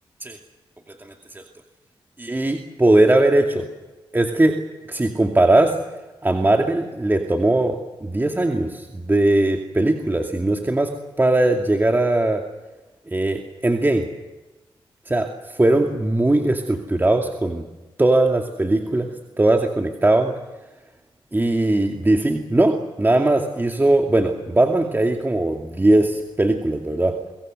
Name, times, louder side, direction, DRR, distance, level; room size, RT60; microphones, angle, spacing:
voice 1, 2.2-3.7 4.1-4.6 4.9-5.7 6.2-10.9 11.2-12.4 13.1-14.1 15.1-15.3 15.6-17.6 18.0-19.1 19.4-20.3 21.3-27.1, right 2 dB, 20° right, 3 dB, 2.4 m, -19 dB
26.0 x 23.5 x 6.7 m, 1.2 s
cardioid pair, 70°, 10 cm